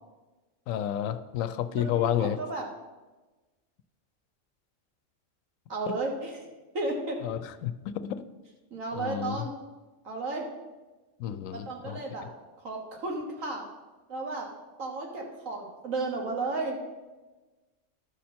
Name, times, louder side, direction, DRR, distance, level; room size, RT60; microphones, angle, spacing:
voice 1, 0.7-2.4 7.2-7.7 8.9-9.4 11.2-12.0, left 10 dB, 90° left, 12 dB, 1.0 m, -30 dB
voice 2, 1.7-2.7 5.7-6.4 6.7-7.2 8.7-9.5 10.0-10.4 11.5-12.3 12.6-13.6 14.1-14.5 14.8-16.8, right 2 dB, 85° right, 1 dB, 1.8 m, -33 dB
11.5 x 4.4 x 6.4 m, 1.2 s
omnidirectional pair, 1.3 m